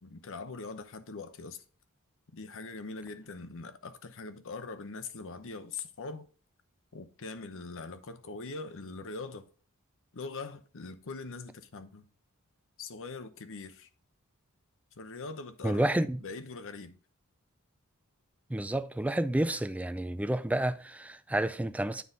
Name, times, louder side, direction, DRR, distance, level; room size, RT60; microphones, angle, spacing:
voice 1, 0.0-1.6 2.3-6.3 6.9-9.5 10.1-12.1 12.8-13.9 15.0-17.0, left 3 dB, 65° left, 0.8 m, -42 dB
voice 2, 15.6-16.2 18.5-22.0, right 1 dB, 5° right, 0.4 m, -30 dB
9.3 x 4.0 x 3.8 m
head